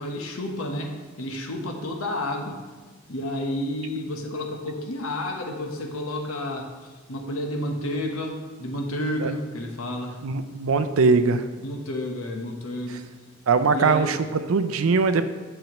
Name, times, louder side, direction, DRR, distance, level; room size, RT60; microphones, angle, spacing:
voice 1, 0.0-2.6 3.1-6.7 7.1-10.2 11.6-13.1 13.7-14.1, left 1 dB, 85° left, 2 dB, 1.1 m, -30 dB
voice 2, 10.2-11.4 12.9-13.0 13.5-15.2, right 4 dB, 80° right, 11 dB, 0.5 m, -21 dB
8.8 x 7.1 x 3.0 m, 1.3 s
head